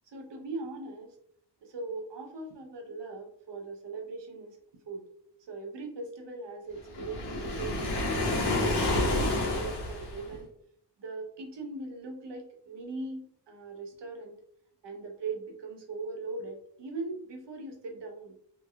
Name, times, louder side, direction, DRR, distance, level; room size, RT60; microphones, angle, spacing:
voice 1, 0.1-1.2 1.6-4.6 4.9-5.0 5.5-8.1 8.6-10.5 11.0-14.4 14.8-18.4, right 3 dB, 75° right, 2 dB, 0.8 m, -40 dB
Waves surf, 6.9-10.4, left 2 dB, 70° left, 1.1 m, -29 dB
3.4 x 3.2 x 2.2 m, 0.65 s
wide cardioid pair, 130°, 42 cm